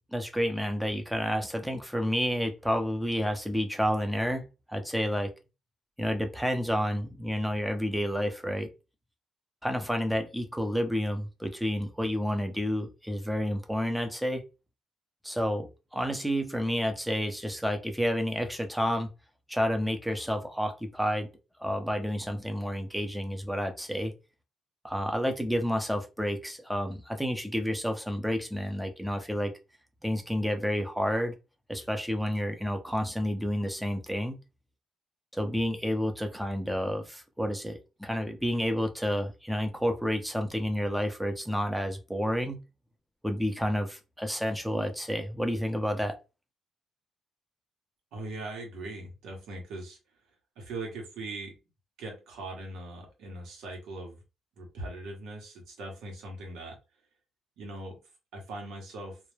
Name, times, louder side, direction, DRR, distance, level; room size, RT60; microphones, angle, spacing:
voice 1, 0.1-5.3 6.0-8.7 9.6-14.5 15.2-15.7 15.9-19.1 19.5-21.3 21.6-24.1 24.8-29.5 30.0-31.4 31.7-34.4 35.3-42.6 43.2-46.2, equal, 5° right, 5 dB, 0.6 m, -30 dB
voice 2, 48.1-50.0 50.6-51.6 52.0-54.2 54.6-56.8 57.6-58.0 58.3-59.2, right 2 dB, 85° right, 1 dB, 0.9 m, -40 dB
2.2 x 2.0 x 3.2 m, 0.29 s
cardioid pair, 90°, 0 cm